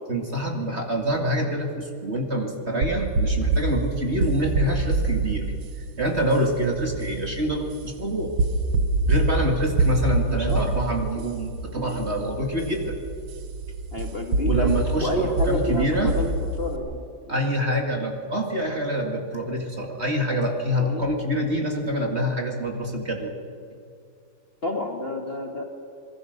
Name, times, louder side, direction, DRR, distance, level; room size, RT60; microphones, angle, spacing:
voice 1, 0.1-5.5 5.8-8.3 9.1-13.0 14.5-16.1 17.3-23.4, equal, 30° right, 2 dB, 2.3 m, -26 dB
sound 1, 2.8-16.8, right 2 dB, 75° right, 2.2 m, -26 dB
voice 2, 10.2-10.7 11.1-11.3 13.9-14.7 15.0-17.4 20.9-21.1 24.6-25.6, left 1 dB, 30° left, 2 dB, 2.1 m, -29 dB
26.5 x 21.0 x 6.6 m, 2.4 s
omnidirectional pair, 2.3 m